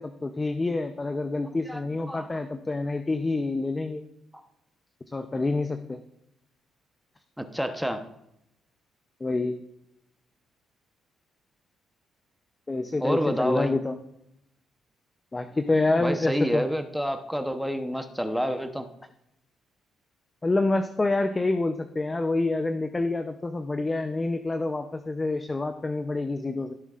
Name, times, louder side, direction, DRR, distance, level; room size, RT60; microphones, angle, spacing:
voice 1, 0.0-4.0 5.1-6.0 9.2-9.6 12.7-14.0 15.3-16.6 20.4-26.7, left 2 dB, 20° left, 8 dB, 0.6 m, -27 dB
voice 2, 7.4-8.0 13.0-13.7 16.0-18.9, equal, ahead, 7 dB, 0.9 m, -28 dB
15.5 x 7.3 x 2.5 m, 0.79 s
cardioid pair, 90°, 0 cm